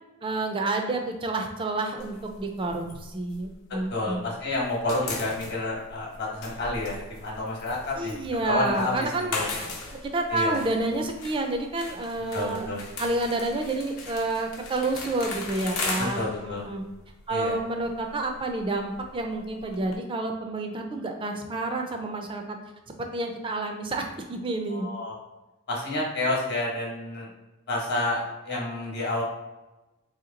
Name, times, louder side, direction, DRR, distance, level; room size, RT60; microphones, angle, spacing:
voice 1, 0.2-4.3 8.0-12.7 13.0-16.8 17.3-22.6 23.1-24.9, right 2 dB, 25° right, 4 dB, 0.4 m, -29 dB
sound 1, 2.0-4.2 4.5-20.0, left 3 dB, 75° left, 0.8 m, -38 dB
voice 2, 3.9-9.4 10.3-10.6 12.3-12.8 16.0-16.7 17.3-17.5 24.7-25.1 25.7-27.3 27.7-29.2, left 2 dB, 50° left, -3 dB, 1.0 m, -29 dB
2.9 x 2.7 x 3.8 m, 1.1 s
head